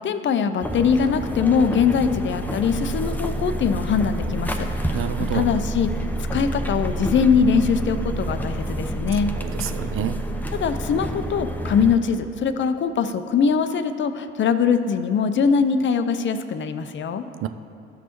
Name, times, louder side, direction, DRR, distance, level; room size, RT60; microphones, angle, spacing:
voice 1, 0.0-5.1 5.3-5.9 6.3-9.3 10.5-17.2, left 6 dB, 40° left, 10 dB, 0.6 m, -22 dB
sound 1, 0.6-12.0, right 1 dB, 5° left, 0.7 m, -28 dB
voice 2, 4.9-5.5 9.4-10.2 17.4-17.5, right 11 dB, 45° right, 10 dB, 0.4 m, -28 dB
13.5 x 6.0 x 3.0 m, 2.6 s
hypercardioid pair, 55°, 31 cm